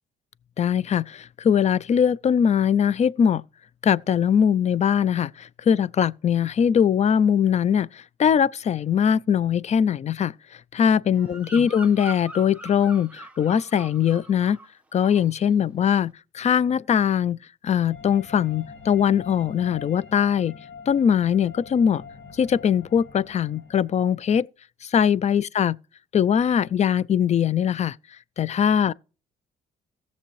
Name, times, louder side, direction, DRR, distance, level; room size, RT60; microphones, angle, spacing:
voice 1, 0.6-3.4 3.8-10.3 10.7-14.6 14.9-17.4 17.6-20.6 20.9-22.0 22.3-24.5 24.8-25.8 26.1-28.0 28.4-28.9, left 8 dB, 35° left, 0.4 m, -21 dB
Bird vocalization bird call bird song, 11.1-14.7 14.9-15.4, right 2 dB, 5° right, 1.1 m, -42 dB
sound 1, 17.9-24.4, left 5 dB, 65° left, 1.9 m, -44 dB
16.0 x 7.0 x 3.1 m
cardioid pair, 90°, 20 cm